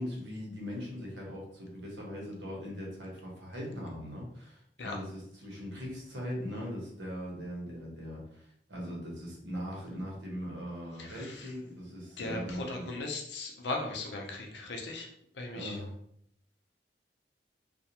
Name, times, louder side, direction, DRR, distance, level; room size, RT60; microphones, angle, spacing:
voice 1, 0.0-12.9 15.5-15.9, equal, 90° right, -2 dB, 0.9 m, -40 dB
voice 2, 11.0-11.5 12.2-15.1 15.3-15.8, left 2 dB, 75° left, 1 dB, 0.6 m, -38 dB
2.4 x 2.2 x 2.8 m, 0.70 s
head